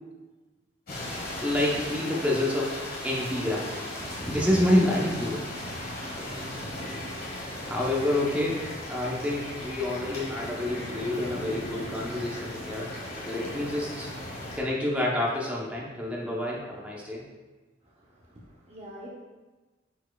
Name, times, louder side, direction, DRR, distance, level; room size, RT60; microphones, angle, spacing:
sound 1, 0.9-14.6, left 1 dB, 50° left, 1.6 m, -36 dB
voice 1, 1.4-2.8 3.0-3.8 4.3-5.4 7.6-8.6 8.9-12.9 13.2-14.1 14.5-17.2, left 1 dB, 5° right, -4 dB, 0.8 m, -28 dB
voice 2, 17.8-19.1, equal, 30° right, -3 dB, 0.7 m, -47 dB
9.2 x 4.5 x 2.3 m, 1.2 s
head